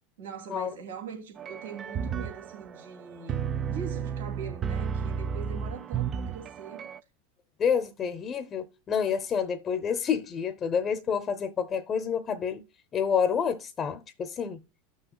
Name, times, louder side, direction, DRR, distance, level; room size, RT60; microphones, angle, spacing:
voice 1, 0.2-6.9, right 7 dB, 85° right, 2.7 m, -42 dB
sound 1, 1.4-7.0, right 7 dB, 30° right, 0.4 m, -33 dB
voice 2, 7.6-12.6 12.9-14.6, left 7 dB, 30° left, 0.7 m, -28 dB
12.5 x 6.3 x 2.3 m
hypercardioid pair, 110°, 0 cm